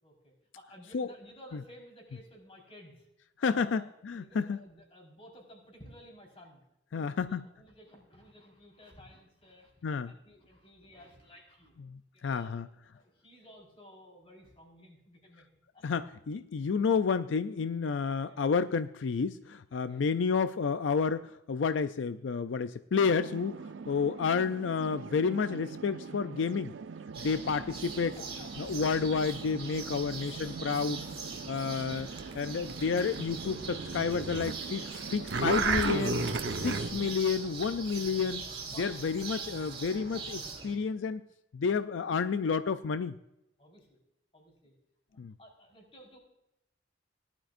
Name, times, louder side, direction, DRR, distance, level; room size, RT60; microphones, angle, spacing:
voice 1, 0.0-3.1 3.4-3.9 4.2-6.6 6.9-9.7 10.0-11.7 12.1-12.6 12.9-15.5 15.7-15.8 18.2-18.4 19.8-20.0 27.8-28.7 29.9-30.2 38.7-39.1 43.6-44.0 44.3-44.7 45.4-46.2, equal, 30° left, 0 dB, 4.2 m, -54 dB
voice 2, 3.4-4.6 6.9-7.4 9.8-10.1 11.9-12.7 15.8-26.7 27.2-28.2 28.6-31.0 31.5-32.1 32.3-36.2 36.6-38.4 38.8-41.2 41.5-43.1 45.2-45.3, left 5 dB, 85° left, 12 dB, 0.4 m, -30 dB
sound 1, 22.9-37.2, right 5 dB, 80° right, 0.4 m, -44 dB
sound 2, 27.1-40.8, right 4 dB, 30° right, 3.6 m, -42 dB
sound 3, 31.9-34.5 34.8-36.9, right 3 dB, 65° right, 0.9 m, -32 dB
18.5 x 12.0 x 2.5 m, 0.86 s
head